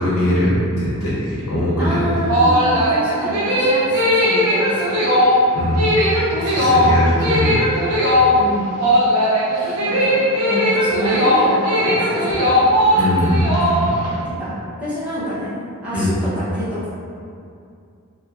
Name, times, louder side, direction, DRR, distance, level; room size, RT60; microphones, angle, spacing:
voice 1, 0.0-2.5 5.5-5.8 6.4-7.6 9.5-9.8 12.9-13.5 13.8-13.9 15.9-16.1, equal, 80° left, -9 dB, 0.8 m, -20 dB
voice 2, 1.8-5.1 8.3-8.8 9.8-12.7 14.2-16.9, equal, 5° right, -13 dB, 0.7 m, -27 dB
sound 1, 2.1-14.2, equal, 85° right, 0.6 m, -17 dB
3.4 x 2.1 x 2.3 m, 2.4 s
head